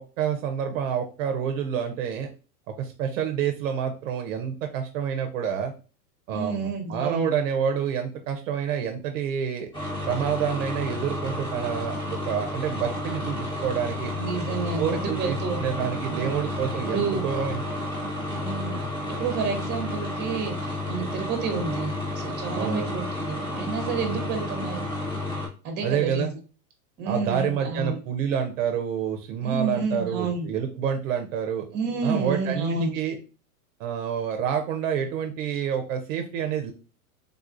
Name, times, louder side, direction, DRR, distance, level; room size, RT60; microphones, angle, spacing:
voice 1, 0.0-2.3 2.8-5.7 6.3-9.7 10.0-14.1 14.8-17.6 22.5-22.8 25.8-26.3 27.1-31.7 32.0-33.2 33.8-36.7, right 8 dB, 55° right, 5 dB, 0.6 m, -28 dB
voice 2, 6.3-7.3 14.2-16.3 16.9-17.2 18.4-18.8 19.1-24.8 25.6-26.3 27.0-28.0 29.4-30.5 31.7-32.9, right 4 dB, 20° right, 4 dB, 0.8 m, -30 dB
sound 1, 9.7-25.5, left 1 dB, 10° left, 1.0 m, -31 dB
3.6 x 2.3 x 2.5 m, 0.35 s
hypercardioid pair, 135°, 47 cm